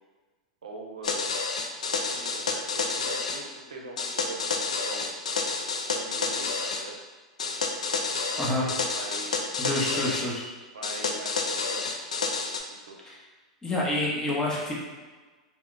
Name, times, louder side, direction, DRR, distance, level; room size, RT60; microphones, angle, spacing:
voice 1, 0.6-1.3 2.1-5.2 5.9-7.0 8.3-9.5 10.7-11.9 12.7-13.0, right 3 dB, 85° right, 0 dB, 0.5 m, -42 dB
sound 1, 1.0-3.4 4.0-6.8 7.4-10.3 10.8-12.6, left 4 dB, 85° left, 0.3 m, -29 dB
voice 2, 9.6-10.4 13.0-13.2 13.6-14.8, left 1 dB, 15° left, -4 dB, 0.8 m, -28 dB
2.3 x 2.1 x 3.8 m, 1.3 s
hypercardioid pair, 105°, 4 cm